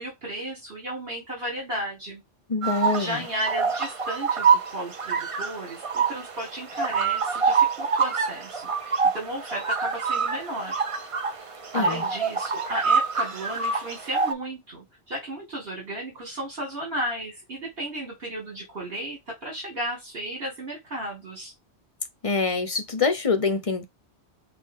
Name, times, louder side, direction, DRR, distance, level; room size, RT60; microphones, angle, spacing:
voice 1, 0.0-2.2 2.9-10.8 11.7-21.5, right 1 dB, 60° right, 2.1 m, -34 dB
voice 2, 2.5-3.2 11.7-12.0 22.2-23.8, left 4 dB, 40° left, 0.6 m, -25 dB
sound 1, 2.6-14.3, right 5 dB, 35° right, 0.6 m, -26 dB
6.3 x 2.4 x 3.5 m
omnidirectional pair, 1.1 m